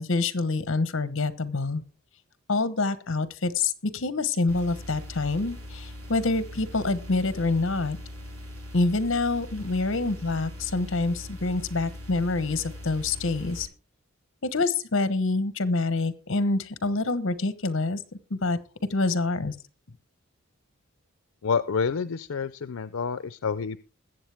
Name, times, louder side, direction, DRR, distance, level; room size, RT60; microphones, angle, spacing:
voice 1, 0.0-1.8 2.5-8.0 8.7-13.7 14.4-18.0 18.3-18.6 18.9-19.5, left 3 dB, 60° left, 14 dB, 1.1 m, -26 dB
sound 1, 4.5-13.6, left 1 dB, 90° right, 3.9 m, -41 dB
voice 2, 21.4-23.8, left 5 dB, 80° left, 14 dB, 0.5 m, -28 dB
21.0 x 7.7 x 3.5 m, 0.33 s
head